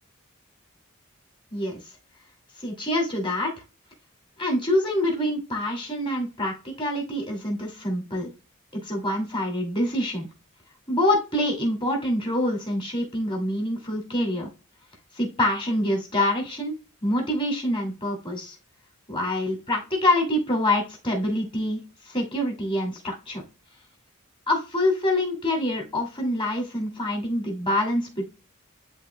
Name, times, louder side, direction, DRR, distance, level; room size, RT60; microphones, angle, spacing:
voice 1, 1.5-1.8 2.6-3.5 4.4-8.3 8.7-10.3 10.9-14.5 15.1-16.7 17.0-18.6 19.1-23.4 24.5-28.2, left 1 dB, 25° left, 0 dB, 2.5 m, -26 dB
11.0 x 3.8 x 2.3 m, 0.32 s
head